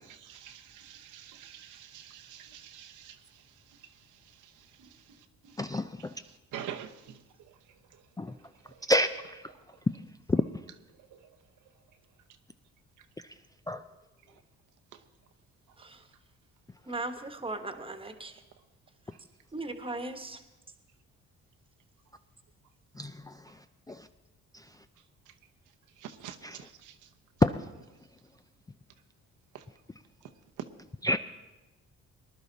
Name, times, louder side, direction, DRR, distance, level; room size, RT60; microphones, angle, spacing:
voice 1, 0.0-4.9 5.4-8.9 9.5-9.8 10.9-11.3 13.0-13.1 14.3-14.4 14.9-15.0 15.7-15.8 25.0-25.4 26.0-27.1 29.5-29.6 30.2-30.3 30.6-30.7, right 10 dB, 85° right, 6 dB, 1.0 m, -48 dB
voice 2, 5.6-6.1 8.2-8.3 8.9-9.4 10.3-10.4 13.7-13.8 23.0-23.3 23.9-24.1 27.4-27.6 31.0-31.2, left 2 dB, 10° left, 9 dB, 0.4 m, -27 dB
voice 3, 16.9-18.3 19.5-20.4, right 2 dB, 20° right, 8 dB, 1.3 m, -37 dB
19.5 x 11.0 x 4.0 m, 1.1 s
cardioid pair, 90°, 30 cm